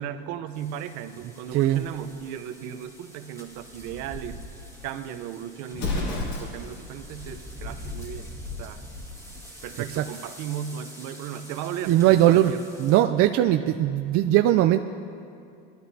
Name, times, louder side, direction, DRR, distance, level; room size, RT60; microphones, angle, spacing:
voice 1, 0.0-4.4 4.8-8.3 8.6-8.8 9.6-12.6, right 9 dB, 65° right, 8 dB, 0.8 m, -36 dB
sound 1, 0.5-13.0, left 1 dB, 10° left, 1.9 m, -43 dB
voice 2, 1.5-1.8 9.9-10.0 11.8-12.5 12.8-14.8, right 13 dB, 50° right, 7 dB, 0.4 m, -20 dB
Explosion, 5.7-6.9, left 3 dB, 60° left, 2.5 m, -29 dB
20.5 x 12.5 x 2.8 m, 2.5 s
supercardioid pair, 115°, 31 cm